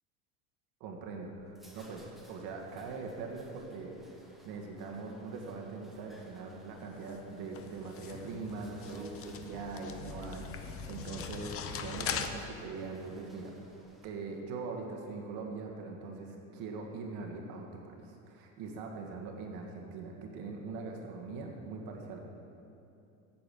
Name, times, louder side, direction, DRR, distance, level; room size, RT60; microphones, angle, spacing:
voice 1, 0.8-3.9 4.4-13.5 14.0-22.2, right 4 dB, 60° right, 1 dB, 1.8 m, -42 dB
sound 1, 1.4-14.5, left 1 dB, ahead, 1.4 m, -59 dB
sound 2, 6.8-12.3, left 7 dB, 35° left, 0.8 m, -41 dB
8.7 x 7.0 x 6.9 m, 2.7 s
hypercardioid pair, 85°, 40 cm